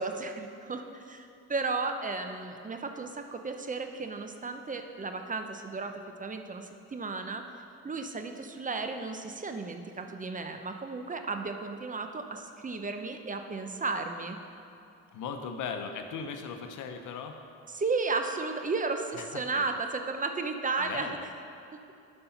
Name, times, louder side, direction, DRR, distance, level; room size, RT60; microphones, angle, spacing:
voice 1, 0.0-7.4 7.8-14.4 17.7-21.3 21.7-21.8, right 3 dB, 25° right, 6 dB, 0.7 m, -34 dB
voice 2, 15.1-17.4 19.2-19.3 19.5-19.6 20.8-21.2, left 6 dB, 80° left, 6 dB, 0.9 m, -38 dB
9.7 x 5.4 x 5.8 m, 2.6 s
cardioid pair, 90°, 30 cm